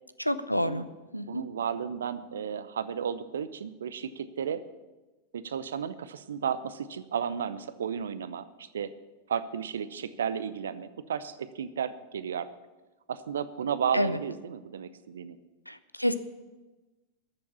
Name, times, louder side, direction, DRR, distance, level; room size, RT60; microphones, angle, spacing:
voice 1, 0.2-0.8 1.1-1.4 13.9-14.2 15.7-16.1, equal, 90° left, 14 dB, 0.6 m, -28 dB
voice 2, 1.3-4.6 5.3-8.9 9.3-12.5 13.1-15.4, right 7 dB, 65° right, 14 dB, 0.7 m, -33 dB
13.0 x 7.1 x 8.4 m, 1.2 s
figure-of-eight pair, 90°, 0 cm